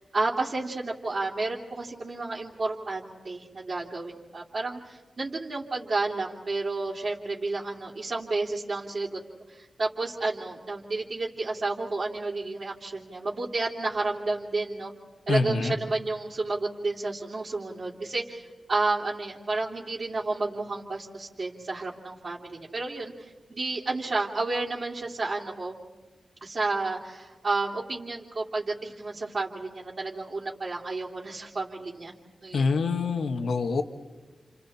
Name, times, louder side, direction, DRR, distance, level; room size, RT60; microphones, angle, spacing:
voice 1, 0.0-9.2 9.5-14.9 15.3-25.7 26.4-32.1 32.4-32.7, right 3 dB, 45° right, -6 dB, 3.0 m, -31 dB
voice 2, 15.3-15.8 32.5-33.8, left 4 dB, 85° left, 6 dB, 1.5 m, -25 dB
30.0 x 29.5 x 4.3 m, 1.4 s
wide cardioid pair, 135°, 0 cm